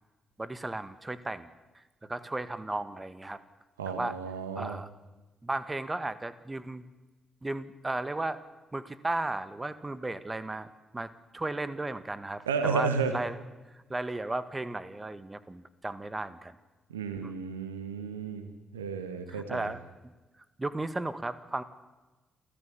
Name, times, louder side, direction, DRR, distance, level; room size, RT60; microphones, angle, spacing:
voice 1, 0.4-1.5 2.0-3.4 3.8-4.2 4.5-4.9 5.4-6.8 7.4-8.4 8.7-10.7 10.9-13.4 13.7-16.5 17.2-17.5 19.3-20.1 20.6-21.6, right 2 dB, 20° right, 14 dB, 1.7 m, -35 dB
voice 2, 3.8-4.8 12.5-13.1 16.9-18.5 18.7-19.7, right 5 dB, 85° right, 10 dB, 1.5 m, -32 dB
28.0 x 14.5 x 8.5 m, 1.2 s
hypercardioid pair, 40°, 0 cm